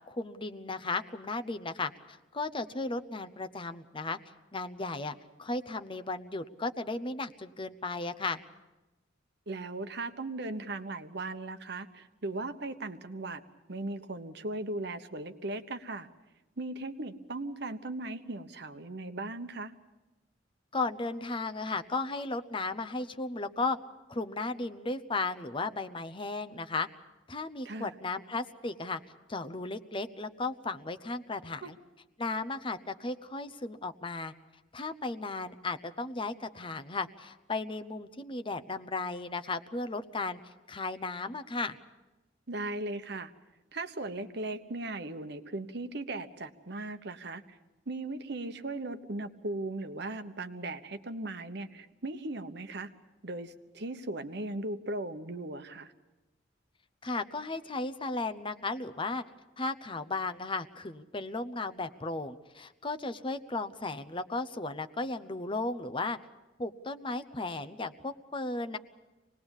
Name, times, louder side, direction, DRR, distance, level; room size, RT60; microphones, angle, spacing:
voice 1, 0.1-4.2 4.5-8.4 20.7-23.8 24.1-26.9 27.3-29.0 29.3-31.8 32.2-34.3 34.7-40.4 40.7-41.8 57.0-59.2 59.6-66.2 66.6-68.8, left 3 dB, 30° left, 9 dB, 0.8 m, -35 dB
voice 2, 9.5-13.4 13.7-16.1 16.6-19.7 27.6-27.9 31.6-31.7 42.5-43.3 43.7-47.6 47.9-52.9 53.2-55.9, right 2 dB, 65° right, 9 dB, 1.1 m, -38 dB
25.5 x 19.5 x 7.2 m, 1.1 s
head